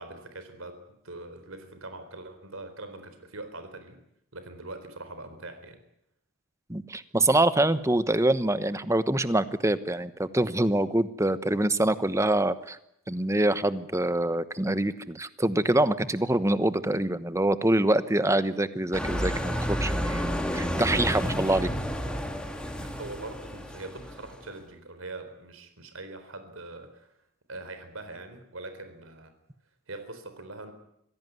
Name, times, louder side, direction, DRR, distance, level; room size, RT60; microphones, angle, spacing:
voice 1, 0.0-4.0 4.3-5.8 22.7-27.1 27.5-29.3 29.9-30.7, right 2 dB, 85° right, 9 dB, 4.0 m, -42 dB
voice 2, 6.7-12.8 13.1-21.7, right 1 dB, 15° right, 13 dB, 1.1 m, -25 dB
sound 1, 18.9-24.6, equal, 5° left, 2.8 m, -31 dB
25.5 x 17.0 x 9.4 m, 0.76 s
head